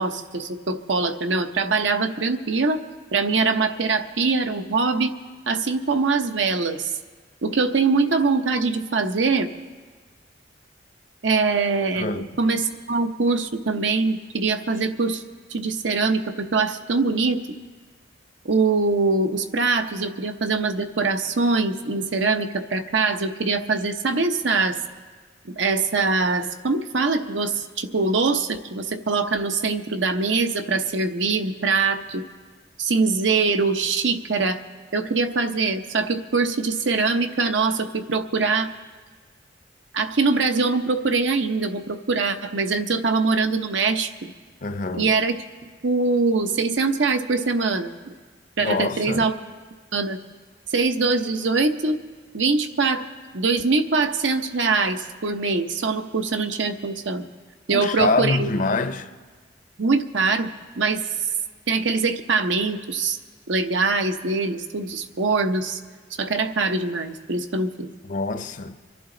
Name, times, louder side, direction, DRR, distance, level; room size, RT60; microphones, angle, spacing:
voice 1, 0.0-2.8 3.1-5.1 5.5-6.9 7.4-9.5 11.2-15.2 15.5-17.4 18.4-24.8 25.4-32.3 32.8-34.6 34.9-38.7 39.9-44.3 44.9-45.4 45.8-48.1 48.6-49.3 49.9-50.2 50.7-52.0 52.3-53.0 53.3-57.3 57.7-58.5 59.8-60.5 60.8-61.0 61.7-63.2 63.5-65.8 66.2-67.9, right 4 dB, 75° right, 0.8 m, -23 dB
voice 2, 12.0-12.3 44.6-45.1 48.6-49.3 57.7-59.1 68.1-68.7, left 3 dB, 45° left, 0.6 m, -25 dB
25.0 x 11.5 x 3.9 m
head